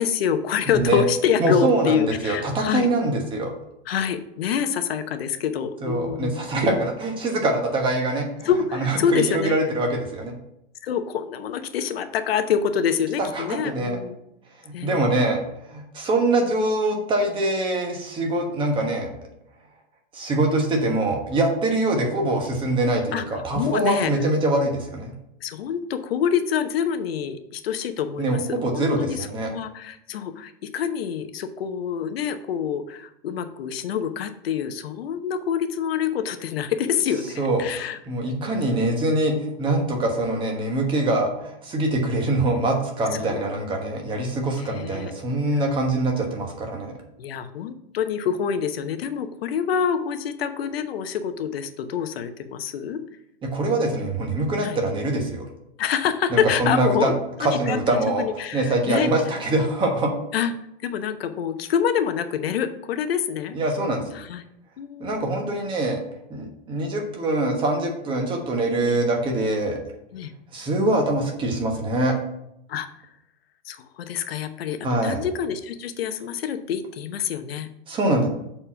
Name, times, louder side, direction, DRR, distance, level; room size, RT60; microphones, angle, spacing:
voice 1, 0.0-2.9 3.9-6.5 8.4-9.5 10.8-14.2 14.7-15.1 23.1-23.2 23.5-24.1 25.4-38.0 38.2-38.6 43.2-43.4 44.6-45.1 45.5-45.6 47.2-53.0 54.6-54.8 55.8-57.1 57.4-59.1 60.3-60.5 60.8-63.6 64.1-64.4 64.8-65.5 68.8-69.0 70.1-70.3 72.7-72.9 73.6-77.7 78.0-78.3, left 8 dB, 80° left, 9 dB, 0.9 m, -26 dB
voice 2, 0.7-1.0 1.4-3.5 5.8-10.3 13.2-14.0 14.6-15.4 15.7-19.1 20.1-25.1 28.2-29.5 37.4-46.9 53.4-55.4 56.3-57.1 57.4-58.2 58.5-60.1 63.5-64.0 65.0-66.0 66.3-69.8 70.5-72.2 74.8-75.2 77.9-78.3, right 2 dB, 15° right, 2 dB, 1.2 m, -24 dB
7.0 x 4.3 x 5.9 m, 0.80 s
supercardioid pair, 155°, 30 cm